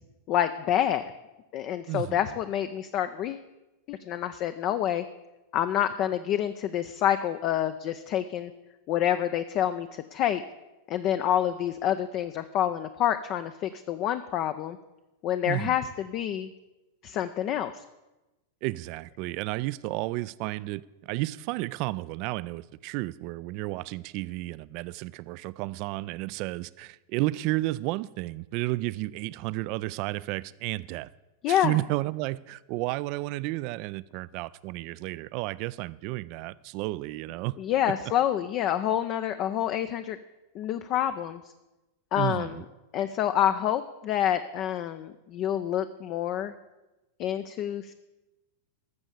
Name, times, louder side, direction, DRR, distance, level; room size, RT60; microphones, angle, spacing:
voice 1, 0.3-1.1 1.5-3.4 3.9-5.0 5.5-8.5 8.9-10.4 10.9-14.8 15.2-16.5 17.0-17.8 31.4-31.8 37.6-40.2 40.5-41.4 42.1-42.6 42.9-46.5 47.2-47.9, left 11 dB, 40° left, 0.5 m, -27 dB
voice 2, 1.9-2.2 15.5-15.8 18.6-31.1 31.5-37.6 37.9-38.0 42.2-42.6, right 19 dB, 45° right, 0.3 m, -32 dB
13.0 x 7.1 x 6.8 m
figure-of-eight pair, 90°, 0 cm